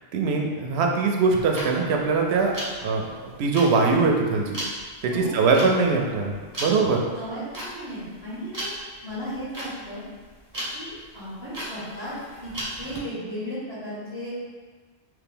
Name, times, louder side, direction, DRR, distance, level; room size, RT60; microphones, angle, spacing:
voice 1, 0.1-2.5 2.8-4.6 5.0-7.0, right 4 dB, 85° right, 1 dB, 0.8 m, -22 dB
sound 1, 1.2-13.0, equal, 20° right, 0.7 m, -36 dB
voice 2, 5.1-5.4 7.1-8.7 9.0-10.0 10.7-12.2 12.4-12.5 12.8-14.3, equal, 75° left, -10 dB, 1.8 m, -35 dB
3.1 x 2.9 x 3.7 m, 1.4 s
omnidirectional pair, 1.1 m